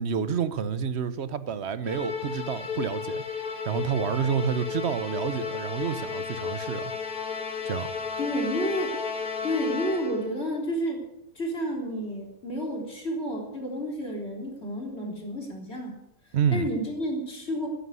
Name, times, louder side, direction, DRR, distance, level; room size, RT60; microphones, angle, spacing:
voice 1, 0.0-3.2 3.6-6.9 7.6-7.9 16.3-16.7, right 7 dB, 55° right, 14 dB, 1.1 m, -28 dB
Musical instrument, 1.8-10.4, left 6 dB, 80° left, 2.3 m, -33 dB
voice 2, 8.2-8.9 9.4-11.0 11.4-16.0 16.5-17.7, equal, 45° left, 0 dB, 4.0 m, -30 dB
13.5 x 10.5 x 9.7 m, 0.90 s
omnidirectional pair, 1.5 m